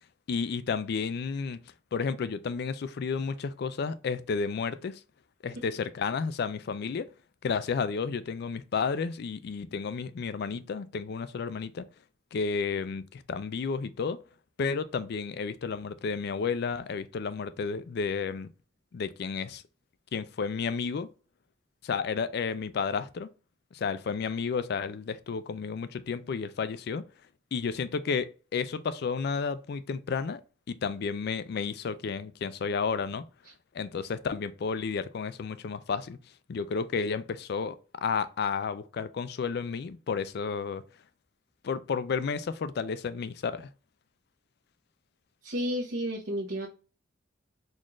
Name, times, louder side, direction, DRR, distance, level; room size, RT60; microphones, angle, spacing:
voice 1, 0.3-1.6 1.9-5.0 5.4-7.1 7.4-11.9 12.3-14.2 14.6-18.5 18.9-19.6 20.1-21.1 21.8-23.3 23.7-27.0 27.5-30.4 30.7-33.2 33.7-36.2 36.5-40.8 41.6-43.7, left 5 dB, 55° left, 0.4 m, -32 dB
voice 2, 45.4-46.7, equal, 65° right, 0.9 m, -31 dB
4.1 x 2.5 x 3.0 m
head